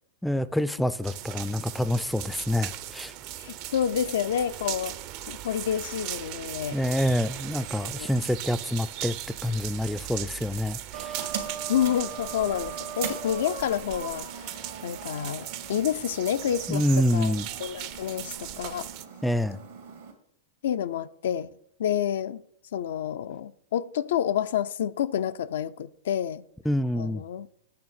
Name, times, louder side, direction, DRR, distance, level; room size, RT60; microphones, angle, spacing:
voice 1, 0.2-3.1 6.7-9.2 9.4-11.3 16.7-17.5 19.2-19.6 26.7-27.2, left 1 dB, 5° left, 0.3 m, -27 dB
sound 1, 1.0-19.0, right 12 dB, 50° right, 0.5 m, -38 dB
voice 2, 3.4-4.9 5.3-6.8 8.0-8.1 11.7-16.8 17.1-17.3 17.6-18.9 20.6-21.5 21.8-22.4 22.7-26.4 27.0-27.5, left 9 dB, 75° left, 0.3 m, -29 dB
sound 2, 10.9-20.1, right 7 dB, 80° right, 1.7 m, -39 dB
8.6 x 3.4 x 6.5 m
hypercardioid pair, 125°, 0 cm